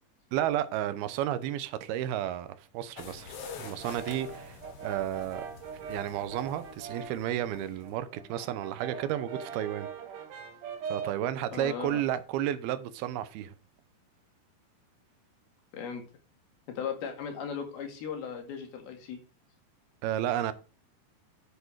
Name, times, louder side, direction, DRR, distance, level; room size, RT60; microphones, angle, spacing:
voice 1, 0.3-5.4 5.9-9.9 10.9-13.5 20.0-20.5, right 11 dB, 80° right, 2.7 m, -32 dB
sound 1, 3.0-7.9, left 5 dB, 55° left, 1.9 m, -47 dB
Brass instrument, 3.6-7.3 7.6-11.3, right 6 dB, 65° right, 2.7 m, -42 dB
voice 2, 11.5-12.0 15.7-16.0 16.7-19.2, left 7 dB, 80° left, 3.8 m, -37 dB
8.5 x 8.1 x 4.7 m
omnidirectional pair, 4.4 m